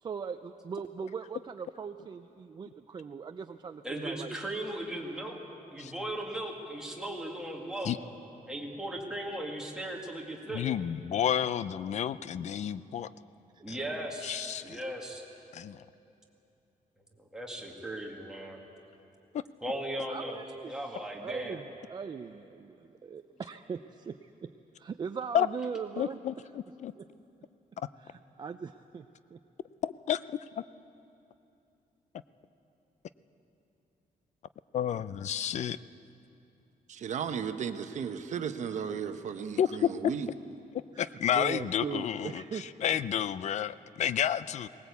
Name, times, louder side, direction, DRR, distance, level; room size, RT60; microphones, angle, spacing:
voice 1, 0.0-4.4 20.1-24.5 24.8-26.2 27.0-27.1 28.0-29.4 40.9-42.7, right 6 dB, 30° right, 7 dB, 0.4 m, -40 dB
voice 2, 3.8-5.4 5.7-8.0 8.5-10.7 13.6-15.2 17.2-18.6 19.6-20.4 20.7-21.6, right 1 dB, 5° right, -1 dB, 2.0 m, -37 dB
voice 3, 10.5-13.1 13.7-13.8 14.2-14.8 15.5-15.8 25.3-25.5 26.0-26.9 29.8-30.4 34.7-35.8 39.6-39.9 41.0-44.7, left 9 dB, 50° left, 16 dB, 0.4 m, -30 dB
voice 4, 36.9-40.3, right 7 dB, 55° right, 8 dB, 1.0 m, -35 dB
19.5 x 18.5 x 8.3 m, 2.8 s
wide cardioid pair, 180°, 15 cm